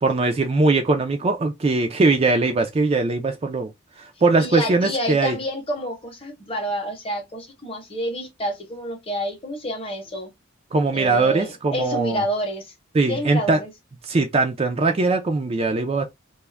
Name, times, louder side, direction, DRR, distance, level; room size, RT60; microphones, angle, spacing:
voice 1, 0.0-3.7 4.0-5.4 10.7-12.2 12.9-13.6 14.1-16.0, right 3 dB, 30° right, 0.3 m, -21 dB
voice 2, 4.4-10.3 10.9-12.7 13.1-13.7, equal, 25° left, 0.8 m, -29 dB
2.3 x 2.1 x 3.2 m
head